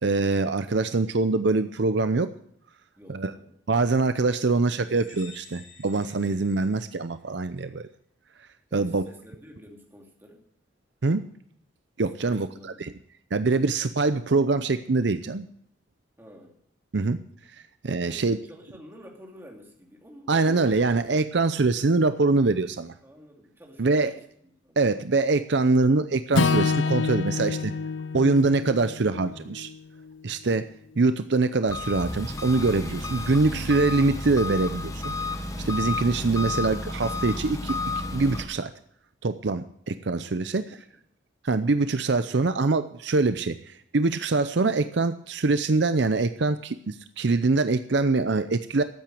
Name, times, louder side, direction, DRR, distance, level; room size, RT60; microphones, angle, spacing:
voice 1, 0.0-2.3 3.1-3.3 3.7-7.9 8.7-9.0 11.0-11.2 12.0-12.9 13.3-15.5 16.9-17.2 17.8-18.4 20.3-22.9 23.8-24.1 24.8-27.7 28.1-29.7 30.2-30.7 31.0-35.1 35.6-37.8 38.1-38.7 39.2-40.6 41.4-48.8, right 3 dB, 60° right, 11 dB, 0.6 m, -24 dB
voice 2, 3.0-3.6 8.7-10.4 12.2-12.9 16.2-16.6 18.0-20.8 23.0-24.8 40.5-41.0, equal, 10° right, 0 dB, 2.7 m, -50 dB
sound 1, 4.9-7.5, left 5 dB, 40° left, 3.5 m, -51 dB
Acoustic guitar / Strum, 26.3-30.6, left 4 dB, 70° left, 0.5 m, -28 dB
Engine, 31.7-38.4, left 3 dB, 15° left, 1.1 m, -32 dB
13.5 x 9.0 x 7.6 m, 0.67 s
head